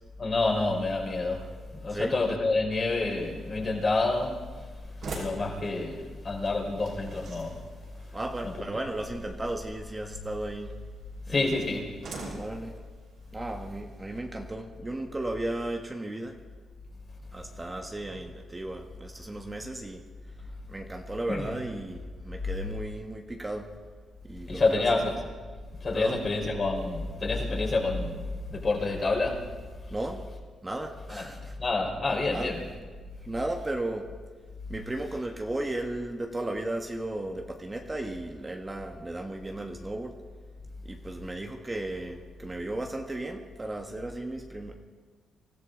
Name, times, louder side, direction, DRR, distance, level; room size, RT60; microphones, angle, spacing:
voice 1, 0.2-4.4 5.1-7.6 8.4-8.5 11.3-11.9 21.3-21.5 24.5-25.1 25.8-28.2 28.5-29.5 31.1-31.3 31.6-32.7, left 3 dB, 45° left, -1 dB, 4.6 m, -28 dB
sound 1, 4.1-14.2, right 2 dB, 70° right, 5.3 m, -46 dB
voice 2, 8.1-10.7 11.3-11.6 12.3-12.8 13.3-16.4 17.3-20.0 20.7-23.7 24.2-25.0 25.9-26.2 29.9-30.3 30.6-31.5 32.3-32.5 33.2-34.1 34.7-40.2 40.8-44.8, right 1 dB, 20° right, 3 dB, 1.5 m, -35 dB
25.0 x 14.0 x 3.9 m, 1.5 s
cardioid pair, 70°, 0 cm